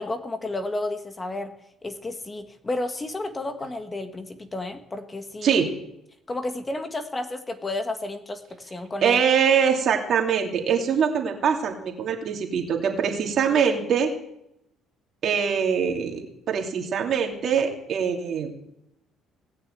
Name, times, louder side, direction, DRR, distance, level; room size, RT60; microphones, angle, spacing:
voice 1, 0.0-1.5 1.8-5.6 6.3-9.2, left 2 dB, 25° left, 8 dB, 1.5 m, -32 dB
voice 2, 5.4-5.7 9.0-14.1 15.2-16.2 16.5-18.5, right 7 dB, 55° right, 3 dB, 2.8 m, -23 dB
18.5 x 6.5 x 8.2 m, 0.81 s
supercardioid pair, 85°, 0 cm